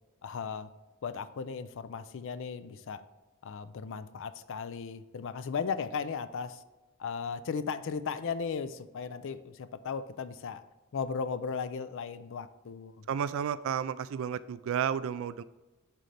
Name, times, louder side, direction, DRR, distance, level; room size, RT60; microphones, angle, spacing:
voice 1, 0.2-0.7 1.0-3.0 3.4-6.6 7.0-10.6 10.9-13.1, left 5 dB, 60° left, 13 dB, 0.4 m, -36 dB
voice 2, 13.1-15.4, right 8 dB, 65° right, 15 dB, 0.3 m, -32 dB
11.0 x 3.9 x 3.3 m, 1.2 s
head